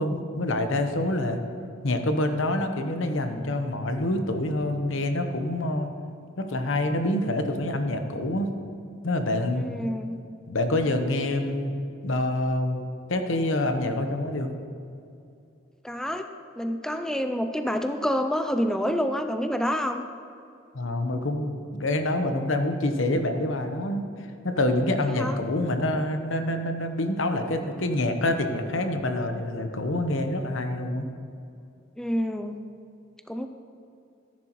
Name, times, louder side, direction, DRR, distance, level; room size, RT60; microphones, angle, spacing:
voice 1, 0.0-1.4 1.8-5.9 6.4-8.5 9.0-9.7 10.5-11.8 12.0-12.8 13.1-14.5 20.7-31.1, left 1 dB, 80° left, 6 dB, 0.9 m, -26 dB
voice 2, 9.6-10.2 15.8-16.2 16.6-20.0 25.0-25.4 32.0-32.6 33.3-33.5, equal, 5° left, 7 dB, 0.4 m, -28 dB
14.0 x 10.5 x 3.0 m, 2.6 s
head